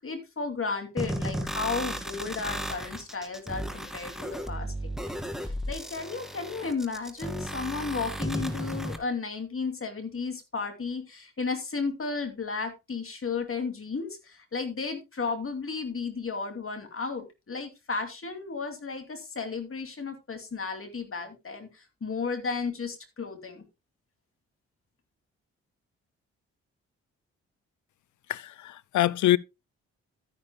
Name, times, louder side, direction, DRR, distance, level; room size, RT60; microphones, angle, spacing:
voice 1, 0.0-4.7 5.0-5.1 5.4-23.6, left 4 dB, 40° left, 2.6 m, -34 dB
sound 1, 1.0-9.0, equal, ahead, 2.3 m, -34 dB
voice 2, 28.3-29.4, left 14 dB, 65° left, 0.5 m, -24 dB
12.5 x 9.9 x 2.2 m
hypercardioid pair, 45°, 32 cm